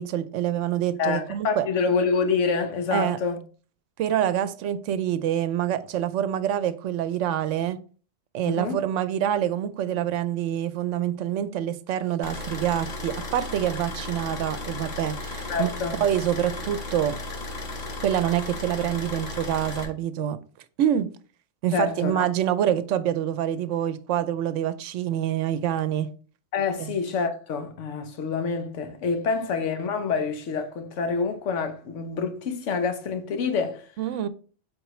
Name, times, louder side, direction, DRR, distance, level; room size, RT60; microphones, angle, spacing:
voice 1, 0.0-1.6 2.9-3.2 4.0-7.8 8.3-15.7 16.0-17.2 18.0-20.4 20.8-21.1 21.6-26.1 26.8-27.0 34.0-34.3, right 10 dB, 75° right, 0.9 m, -26 dB
voice 2, 1.0-3.4 8.4-8.8 15.5-16.0 21.7-22.3 26.5-33.9, left 5 dB, 75° left, 1.2 m, -27 dB
sound 1, 12.2-19.8, left 2 dB, 35° left, 1.0 m, -35 dB
7.9 x 3.9 x 3.1 m
omnidirectional pair, 1.3 m